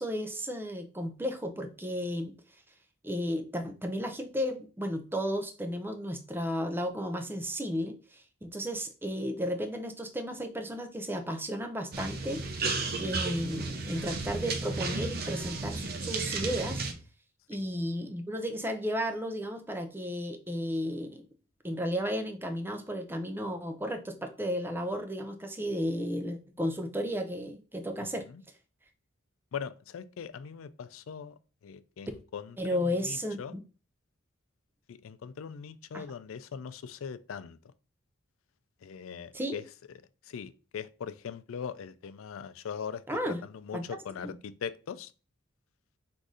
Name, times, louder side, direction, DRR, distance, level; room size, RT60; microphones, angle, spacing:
voice 1, 0.0-2.3 3.0-12.7 13.0-16.8 17.5-21.3 21.6-28.3 32.6-33.6 35.9-36.0 39.3-39.6 43.1-43.4 43.7-43.8 44.2-44.3, equal, 10° right, 0.5 m, -33 dB
sound 1, 11.9-16.9, right 3 dB, 50° right, 0.6 m, -33 dB
voice 2, 28.0-28.4 29.5-31.3 31.6-33.5 34.9-37.6 38.8-39.6 40.2-45.1, left 7 dB, 90° left, 0.4 m, -41 dB
4.0 x 2.6 x 4.8 m
head